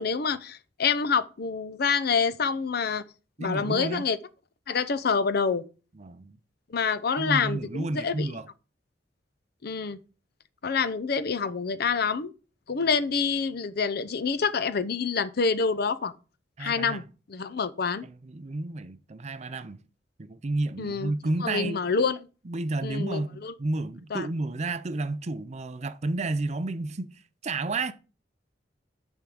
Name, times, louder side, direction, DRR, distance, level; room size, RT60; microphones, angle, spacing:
voice 1, 0.0-3.0 3.4-4.2 4.7-5.6 6.7-8.3 9.6-10.0 10.6-12.3 12.7-16.1 16.6-17.0 17.3-18.1 20.8-21.1 21.4-22.2 22.8-23.5 24.1-24.3, left 5 dB, 55° left, 0.6 m, -27 dB
voice 2, 3.4-4.1 6.0-6.3 7.2-8.5 16.6-17.0 18.0-19.8 20.2-21.8 22.5-27.1 27.4-27.9, right 2 dB, 35° right, 0.6 m, -31 dB
10.0 x 3.6 x 6.3 m
head